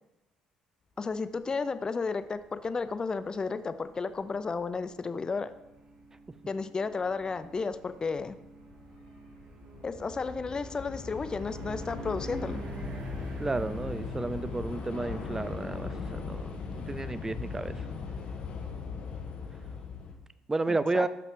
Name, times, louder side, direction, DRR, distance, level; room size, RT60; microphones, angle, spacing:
voice 1, 1.0-5.5 6.5-8.4 9.8-12.6 20.7-21.1, left 4 dB, 30° left, 13 dB, 0.6 m, -33 dB
sound 1, 1.0-20.3, right 3 dB, 55° right, 1.5 m, -48 dB
Train / Subway metro underground, 6.1-6.2 7.1-7.3 7.6-20.1, left 5 dB, 60° left, 1.3 m, -39 dB
voice 2, 13.4-17.9 20.5-21.1, right 3 dB, 20° right, 14 dB, 0.5 m, -32 dB
12.0 x 5.6 x 3.7 m, 0.94 s
supercardioid pair, 80°, 3 cm